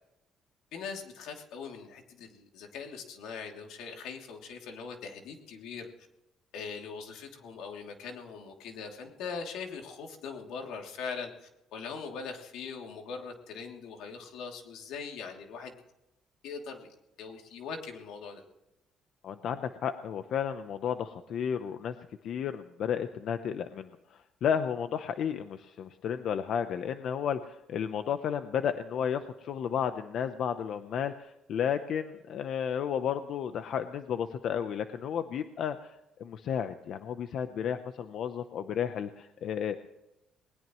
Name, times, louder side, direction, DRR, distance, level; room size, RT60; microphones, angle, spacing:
voice 1, 0.7-5.9 6.5-15.7 16.4-16.9 17.2-18.4, left 5 dB, 85° left, 2 dB, 2.9 m, -41 dB
voice 2, 19.2-21.9 22.2-35.9 36.2-39.7, left 8 dB, 55° left, 9 dB, 0.8 m, -32 dB
20.5 x 20.0 x 3.2 m, 0.92 s
cardioid pair, 160°, 0 cm